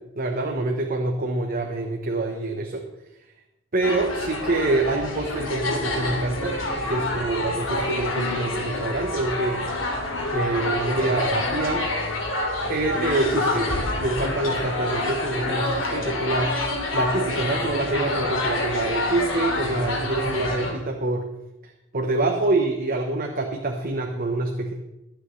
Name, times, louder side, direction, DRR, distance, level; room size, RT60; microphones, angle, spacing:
voice 1, 0.0-2.8 3.7-9.6 10.3-11.9 12.7-13.7 14.0-16.6 16.9-21.3 21.6-24.7, right 2 dB, 45° right, 2 dB, 1.1 m, -26 dB
sound 1, 3.8-20.7, left 2 dB, 75° left, 2.5 m, -27 dB
23.0 x 7.9 x 3.3 m, 0.95 s
head